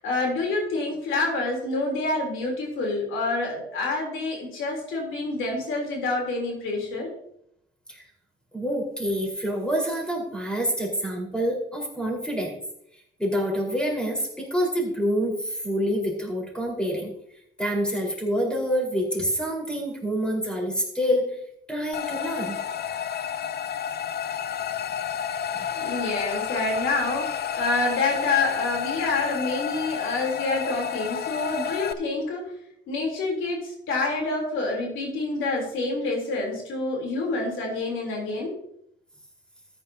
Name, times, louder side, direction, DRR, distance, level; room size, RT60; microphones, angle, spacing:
voice 1, 0.0-7.1 25.7-32.5 32.9-38.5, left 3 dB, 80° left, 0 dB, 3.4 m, -27 dB
voice 2, 8.5-12.5 13.2-17.1 17.6-21.4 21.7-22.6 25.5-25.7, equal, 5° left, -2 dB, 4.3 m, -27 dB
sound 1, 21.9-31.9, left 8 dB, 55° left, 0.6 m, -30 dB
14.0 x 9.3 x 2.8 m, 0.75 s
cardioid pair, 90°, 20 cm